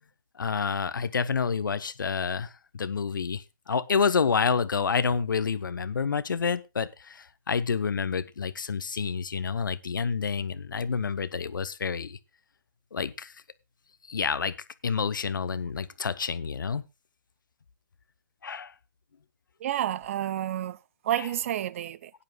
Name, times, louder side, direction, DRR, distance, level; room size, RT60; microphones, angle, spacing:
voice 1, 0.4-12.2 12.9-13.3 14.1-14.5 14.8-16.8 18.4-18.7 21.2-21.3, left 5 dB, 70° left, 1.0 m, -28 dB
voice 2, 19.6-20.8 21.0-22.1, right 12 dB, 40° right, 0.6 m, -30 dB
16.5 x 10.5 x 2.3 m
hypercardioid pair, 140°, 11 cm